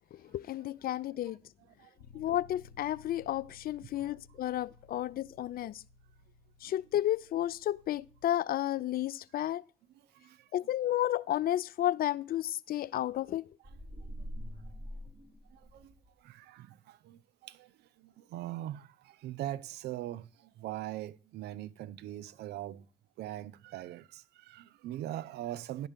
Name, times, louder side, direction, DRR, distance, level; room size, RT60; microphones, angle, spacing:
voice 1, 0.1-1.4 2.1-5.8 6.6-9.6 10.5-13.5, left 13 dB, 60° left, 0.4 m, -32 dB
voice 2, 1.7-2.2 3.9-4.4 4.9-5.1 6.6-6.7 9.9-10.5 12.7-12.8 13.6-13.8 14.6-14.7 15.5-22.9 23.2-25.9, right 13 dB, 70° right, 0.4 m, -42 dB
Bass guitar, 2.0-8.2, left 4 dB, 85° left, 0.9 m, -58 dB
sound 1, 13.6-16.1, equal, 25° right, 1.6 m, -44 dB
10.5 x 3.7 x 7.2 m
supercardioid pair, 55°, 18 cm